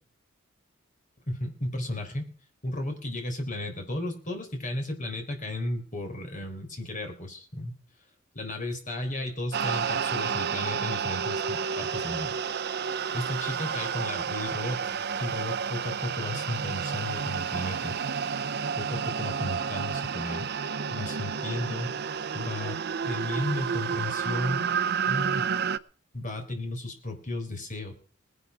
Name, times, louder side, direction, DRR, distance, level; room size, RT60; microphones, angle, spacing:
voice 1, 1.3-2.3 2.6-7.8 8.3-12.4 13.1-14.9 15.2-18.0 18.8-20.5 20.9-22.0 22.3-22.8 23.1-24.7 25.1-25.5 26.1-27.9, left 1 dB, 40° left, 4 dB, 4.0 m, -34 dB
sound 1, 9.5-25.8, right 6 dB, 55° right, 0.6 m, -30 dB
19.0 x 11.0 x 4.8 m, 0.43 s
head